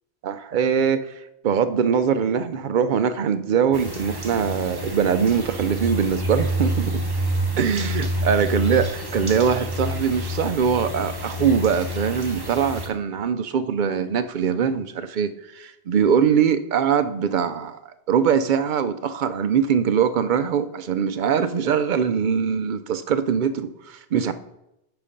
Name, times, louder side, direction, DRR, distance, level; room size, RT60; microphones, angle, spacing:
voice 1, 0.2-1.1 1.4-7.0 7.6-17.8 18.1-24.3, right 7 dB, 55° right, 11 dB, 0.6 m, -22 dB
sound 1, 3.7-12.9, right 1 dB, 20° right, 1.1 m, -28 dB
10.5 x 4.2 x 5.1 m, 0.86 s
omnidirectional pair, 1.2 m